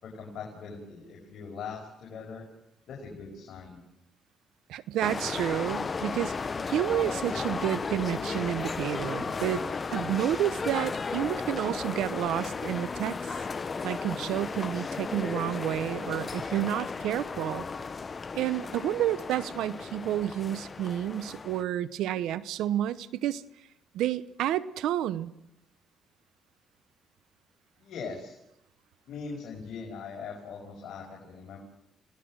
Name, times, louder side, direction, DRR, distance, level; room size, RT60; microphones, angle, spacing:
voice 1, 0.0-2.5 2.9-3.8 27.8-28.4 29.1-31.6, left 5 dB, 70° left, -1 dB, 5.6 m, -41 dB
voice 2, 4.7-6.4 6.7-9.6 9.9-13.2 13.8-17.6 18.3-23.4 23.9-25.3, right 12 dB, 85° right, 16 dB, 0.9 m, -30 dB
sound 1, 5.0-21.6, left 4 dB, 35° left, 1.0 m, -34 dB
30.0 x 17.5 x 6.3 m, 0.82 s
cardioid pair, 90°, 0 cm